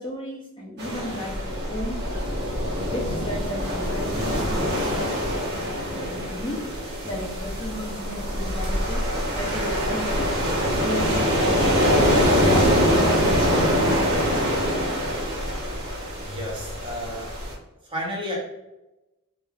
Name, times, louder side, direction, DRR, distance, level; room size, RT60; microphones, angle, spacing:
voice 1, 0.0-2.0 2.8-5.3 5.8-6.7 7.0-10.4 10.8-11.4 11.9-14.2, equal, 20° left, -4 dB, 0.5 m, -34 dB
sound 1, 0.8-17.5, equal, 45° right, 0.9 m, -24 dB
voice 2, 16.2-17.3 17.8-18.4, equal, 25° right, -4 dB, 0.9 m, -32 dB
3.1 x 2.7 x 2.3 m, 0.97 s
head